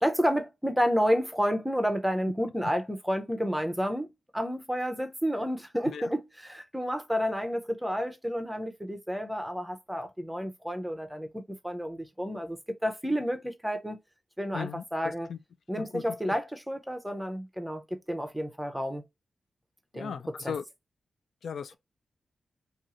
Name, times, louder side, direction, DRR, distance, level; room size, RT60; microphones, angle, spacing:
voice 1, 0.0-14.0 14.4-15.3 15.7-19.0 19.9-20.2 20.4-20.5, equal, 5° right, 0.6 m, -30 dB
voice 2, 14.5-15.4 15.8-16.4 19.9-20.6 21.4-21.8, left 7 dB, 80° left, 0.3 m, -38 dB
2.6 x 2.4 x 2.9 m
wide cardioid pair, 120°, 0 cm